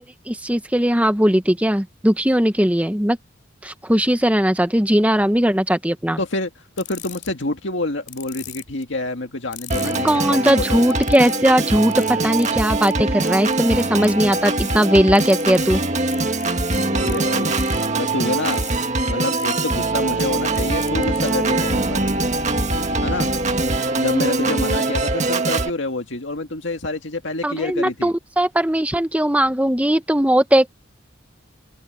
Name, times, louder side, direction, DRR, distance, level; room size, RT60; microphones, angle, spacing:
voice 1, 0.3-3.2 3.6-6.2 9.8-15.8 27.4-30.7, equal, 5° right, 1.1 m, -19 dB
voice 2, 6.2-6.5 6.8-10.8 16.8-17.6 17.9-18.6 19.1-22.0 23.0-23.3 24.0-28.1, left 2 dB, 70° left, 2.0 m, -27 dB
sound 1, 6.8-7.4 8.1-8.8 9.5-10.2 10.9-11.4 11.9-12.1 12.4-12.5 12.8-12.9 13.2-14.1 14.3-14.8 15.1-15.6 16.1-17.2 17.6-17.9 18.5-18.8 19.4-19.6 20.2-20.3 20.5-21.3, left 12 dB, 40° left, 3.7 m, -37 dB
Organ, 9.7-25.7, right 2 dB, 35° right, 1.8 m, -22 dB
open air
head